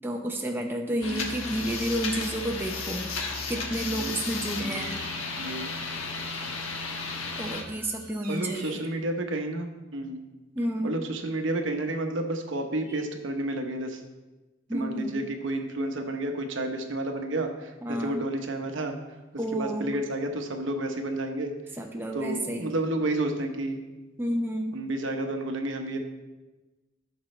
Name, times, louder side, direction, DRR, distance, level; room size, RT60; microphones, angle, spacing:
voice 1, 0.0-3.1 3.5-5.0 7.4-8.8 10.5-10.9 12.9-13.0 14.7-15.1 17.8-18.2 19.4-19.9 21.8-22.7 24.2-24.8, right 1 dB, 10° right, 1 dB, 0.8 m, -31 dB
voice 2, 0.9-1.4 3.9-4.1 4.6-5.0 5.4-5.7 8.3-10.2 10.8-14.0 14.7-19.0 19.5-21.8 22.1-23.8 24.7-26.0, right 1 dB, 70° right, 5 dB, 1.0 m, -31 dB
sound 1, 1.0-7.6, left 4 dB, 90° left, 1.2 m, -34 dB
Bird vocalization bird call bird song, 4.5-5.5 7.3-9.0, right 3 dB, 45° right, 2.3 m, -44 dB
13.5 x 6.2 x 3.3 m, 1.2 s
head